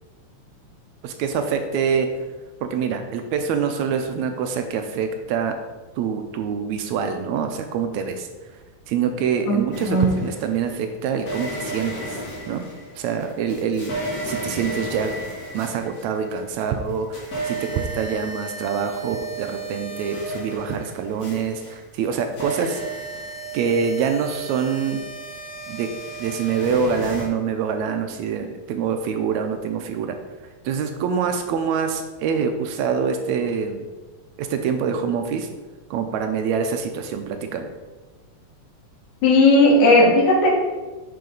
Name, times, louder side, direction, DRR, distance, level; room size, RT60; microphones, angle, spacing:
voice 1, 1.0-2.1 2.6-5.6 6.0-8.3 8.9-12.2 12.5-12.7 13.0-13.9 14.3-15.1 15.5-22.8 23.5-25.0 25.7-25.9 26.2-30.2 30.7-33.8 34.4-35.5 35.9-37.7, right 6 dB, 80° right, 6 dB, 1.8 m, -25 dB
voice 2, 9.5-10.1 39.2-40.5, left 2 dB, 80° left, -4 dB, 3.1 m, -16 dB
sound 1, 9.7-10.6 11.2-16.6 16.9-27.3, right 2 dB, 35° left, 1.9 m, -33 dB
9.5 x 5.0 x 3.9 m, 1.2 s
omnidirectional pair, 3.5 m